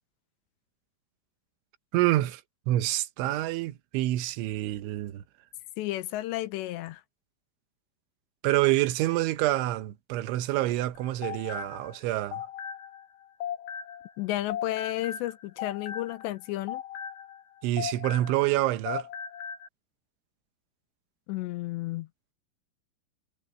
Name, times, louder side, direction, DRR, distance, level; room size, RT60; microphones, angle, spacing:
voice 1, 1.9-2.4 2.7-5.2 8.4-12.5 17.6-19.1, right 15 dB, 85° right, 3.4 m, -27 dB
voice 2, 5.8-7.0 14.2-16.8 21.3-22.1, left 16 dB, 80° left, 2.8 m, -32 dB
sound 1, 11.0-14.2 14.5-18.6 18.9-19.7, left 8 dB, 55° left, 2.7 m, -38 dB
omnidirectional pair, 5.4 m